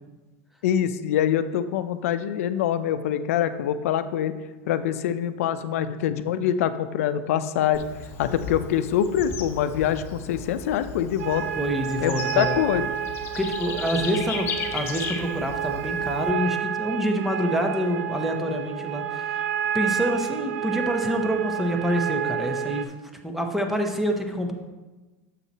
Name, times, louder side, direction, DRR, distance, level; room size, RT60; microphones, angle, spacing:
voice 1, 0.6-4.3 4.7-7.8 8.2-11.4 12.0-12.9, left 10 dB, 80° left, 12 dB, 0.5 m, -24 dB
Bird / Insect, 7.7-16.3, left 5 dB, 35° left, 0.9 m, -36 dB
sound 1, 11.2-22.9, right 9 dB, 75° right, 0.4 m, -30 dB
voice 2, 11.6-12.6 13.3-19.4 19.7-22.9 23.2-24.5, equal, 5° right, 3 dB, 0.8 m, -27 dB
7.4 x 5.6 x 4.1 m, 1.2 s
supercardioid pair, 145°, 8 cm